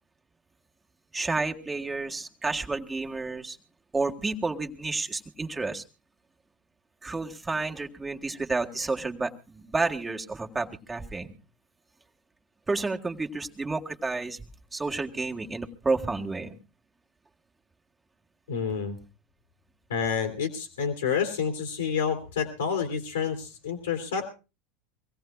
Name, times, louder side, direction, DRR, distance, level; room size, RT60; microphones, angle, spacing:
voice 1, 1.1-3.6 3.9-5.8 7.0-11.4 12.7-14.5 14.7-16.6, right 3 dB, 15° right, 3 dB, 1.8 m, -30 dB
voice 2, 18.5-19.0 19.9-24.3, left 6 dB, 85° left, 3 dB, 2.7 m, -29 dB
24.5 x 17.0 x 2.3 m, 0.31 s
hypercardioid pair, 85°, 0 cm